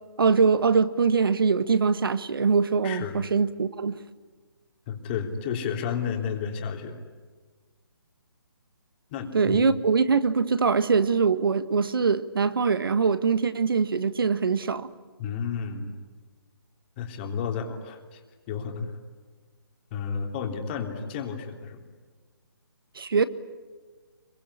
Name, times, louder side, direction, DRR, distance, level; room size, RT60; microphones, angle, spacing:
voice 1, 0.2-4.0 9.3-14.9 22.9-23.2, right 5 dB, 65° right, 1.6 m, -23 dB
voice 2, 2.8-3.2 4.9-7.0 9.1-9.7 15.2-15.9 17.0-18.2 18.5-19.0 19.9-21.8, left 6 dB, 25° left, 3.3 m, -32 dB
25.5 x 23.5 x 10.0 m
hypercardioid pair, 155°, 12 cm